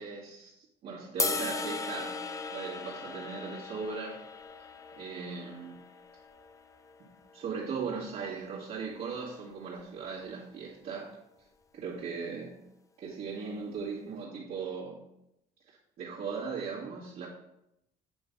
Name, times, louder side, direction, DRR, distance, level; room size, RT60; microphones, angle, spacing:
voice 1, 0.0-2.2 2.5-4.2 5.0-5.8 7.3-11.2 11.7-12.5 13.0-15.0 16.0-17.3, right 5 dB, 60° right, -9 dB, 1.8 m, -38 dB
sound 1, 1.2-7.4, left 4 dB, 20° left, 0.5 m, -37 dB
7.8 x 3.2 x 5.2 m, 0.83 s
cardioid pair, 110°, 17 cm